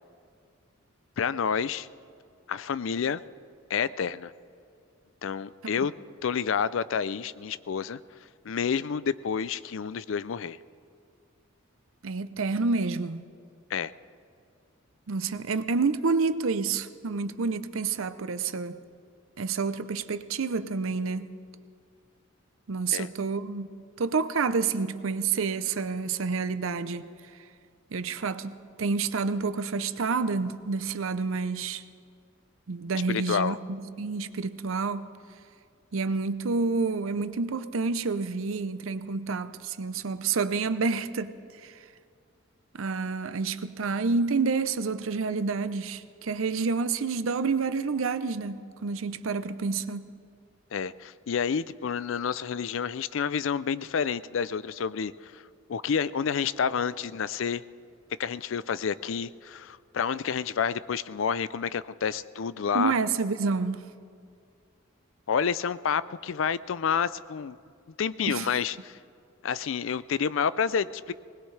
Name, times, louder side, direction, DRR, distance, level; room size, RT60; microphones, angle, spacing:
voice 1, 1.2-1.9 2.5-3.2 3.7-4.3 5.2-5.9 6.2-8.0 8.4-10.6 13.7-13.9 22.9-23.1 33.1-33.6 50.7-55.4 55.7-57.6 58.2-62.9 65.3-67.6 68.0-69.0 69.4-71.1, left 6 dB, 65° left, 0.4 m, -29 dB
voice 2, 12.0-13.3 15.1-18.8 19.4-21.3 22.7-23.7 24.0-27.1 27.9-31.8 32.7-35.1 35.9-41.3 41.6-41.7 42.7-50.0 62.7-63.8 68.3-68.5, right 4 dB, 75° right, 0.6 m, -29 dB
20.5 x 19.5 x 3.3 m
head